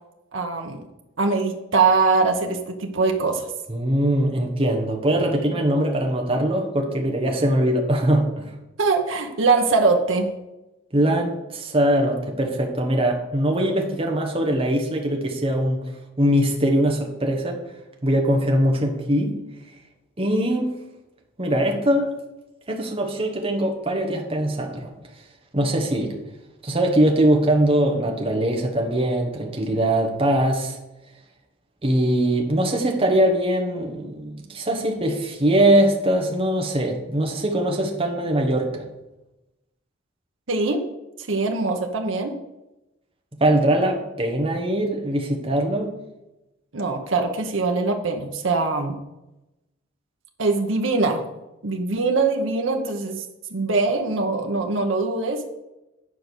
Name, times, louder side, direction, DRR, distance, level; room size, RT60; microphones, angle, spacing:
voice 1, 0.3-0.8 1.2-3.5 8.8-10.3 40.5-40.8 41.3-42.3 46.7-49.0 50.4-51.2 51.6-53.2 53.5-55.4, right 3 dB, 80° right, 4 dB, 1.0 m, -22 dB
voice 2, 3.7-8.5 10.9-15.8 16.2-17.6 18.0-19.3 20.2-20.7 21.4-22.1 22.7-24.9 25.5-26.1 26.6-30.8 31.8-38.8 43.4-45.9, right 1 dB, 30° right, 1 dB, 1.3 m, -22 dB
9.6 x 5.1 x 6.3 m, 0.96 s
head